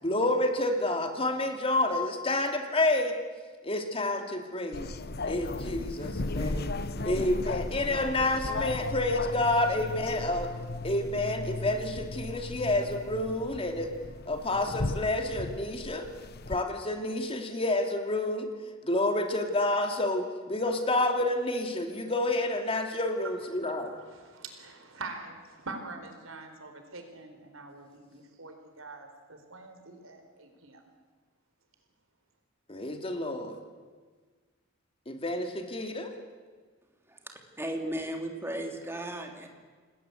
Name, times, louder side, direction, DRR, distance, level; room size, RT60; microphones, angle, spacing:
voice 1, 0.0-3.1 3.6-4.9 5.3-6.7 7.0-10.5 10.8-13.9 14.3-16.1 16.5-18.5 18.8-23.9 32.7-33.5 35.1-36.1, left 2 dB, 30° left, 5 dB, 2.7 m, -29 dB
sound 1, 4.7-16.6, left 2 dB, 50° left, 1.0 m, -36 dB
voice 2, 23.2-30.8, right 3 dB, 80° right, 6 dB, 4.3 m, -45 dB
voice 3, 37.1-39.5, right 1 dB, 10° right, 3 dB, 3.2 m, -36 dB
28.0 x 19.5 x 8.2 m, 1.5 s
head